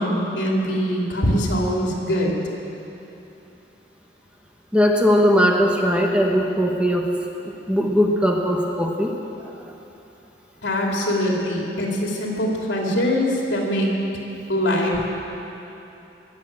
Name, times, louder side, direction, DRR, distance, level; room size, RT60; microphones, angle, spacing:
voice 1, 0.0-2.4 10.6-13.9 14.5-15.1, equal, 75° left, -2 dB, 3.0 m, -22 dB
voice 2, 4.7-7.1 7.7-9.1 9.4-9.6, equal, 5° right, 0 dB, 1.2 m, -19 dB
22.5 x 8.5 x 7.6 m, 3.0 s
head